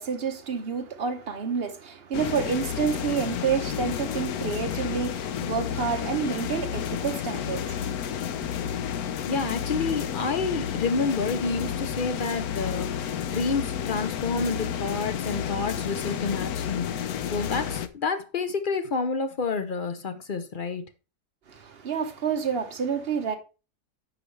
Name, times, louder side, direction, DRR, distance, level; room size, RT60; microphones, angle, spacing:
voice 1, 0.0-8.0 21.5-23.4, right 6 dB, 40° right, 1.1 m, -29 dB
sound 1, 2.1-17.9, left 9 dB, 70° left, 1.1 m, -31 dB
voice 2, 9.3-20.8, left 4 dB, 50° left, 0.6 m, -29 dB
9.9 x 6.2 x 3.2 m
omnidirectional pair, 1.7 m